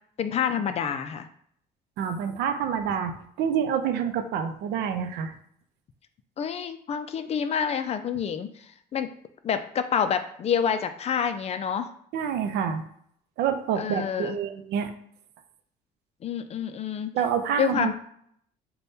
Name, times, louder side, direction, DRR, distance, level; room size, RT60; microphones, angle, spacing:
voice 1, 0.2-1.3 6.4-9.1 9.4-11.9 13.8-14.4 16.2-17.1 17.6-17.9, left 7 dB, 40° left, 9 dB, 0.4 m, -28 dB
voice 2, 2.0-5.3 12.1-12.8 13.4-14.9 17.1-17.9, right 8 dB, 80° right, 8 dB, 0.5 m, -27 dB
4.0 x 2.2 x 3.4 m, 0.66 s
cardioid pair, 110°, 17 cm